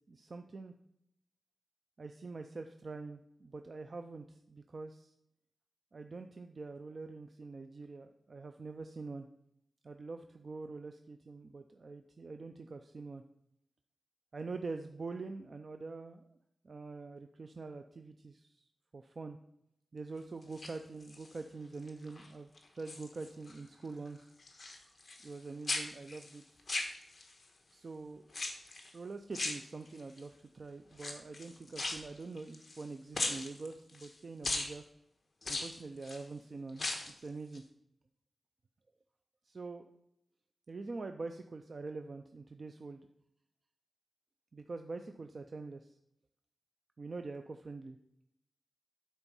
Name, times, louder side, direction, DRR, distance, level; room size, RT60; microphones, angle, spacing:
voice 1, 0.1-0.7 2.0-5.1 5.9-9.3 9.8-13.2 14.3-16.4 16.6-18.7 18.9-19.4 19.9-24.3 25.2-26.4 27.7-28.2 28.9-34.8 35.5-36.9 37.2-37.6 39.4-39.9 40.7-43.1 44.5-46.0 47.0-48.0, right 3 dB, 40° right, 7 dB, 0.4 m, -45 dB
sound 1, 20.4-21.4 21.9-22.3 22.6-23.6 23.8-25.4 25.6-27.4 28.3-28.9 29.3-30.2 30.9-32.9 33.1-34.1 34.4-34.7 35.4-36.2 36.7-37.2 37.5-37.6, left 2 dB, 35° left, 1.3 m, -39 dB
9.8 x 4.4 x 5.4 m, 0.79 s
wide cardioid pair, 140°, 0 cm